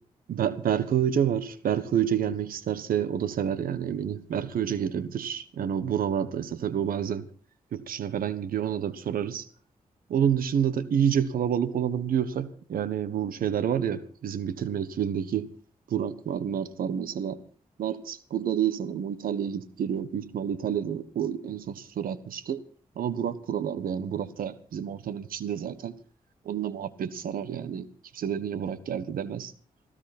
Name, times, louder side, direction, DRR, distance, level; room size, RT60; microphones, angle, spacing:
voice 1, 0.3-7.2 7.7-9.5 10.1-15.5 15.9-17.4 17.8-22.6 22.9-25.9 26.4-27.9 28.1-29.5, right 9 dB, 85° right, 14 dB, 1.4 m, -29 dB
19.0 x 15.5 x 4.3 m, 0.40 s
cardioid pair, 55°, 14 cm